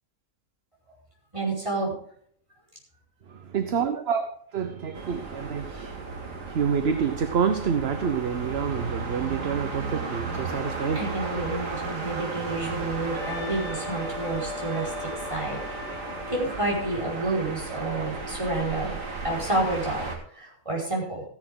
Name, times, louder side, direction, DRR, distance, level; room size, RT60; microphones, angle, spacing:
voice 1, 1.3-1.9 10.9-16.0 16.3-21.2, right 2 dB, 20° right, -3 dB, 5.1 m, -30 dB
voice 2, 3.3-4.3 4.5-11.0 11.3-11.4, right 7 dB, 50° right, 8 dB, 1.0 m, -28 dB
sound 1, 4.9-20.1, right 3 dB, 70° right, 2.5 m, -34 dB
Wind instrument woodwind instrument, 13.1-17.0, left 5 dB, ahead, 4.1 m, -40 dB
15.5 x 10.5 x 3.8 m, 0.62 s
omnidirectional pair, 1.4 m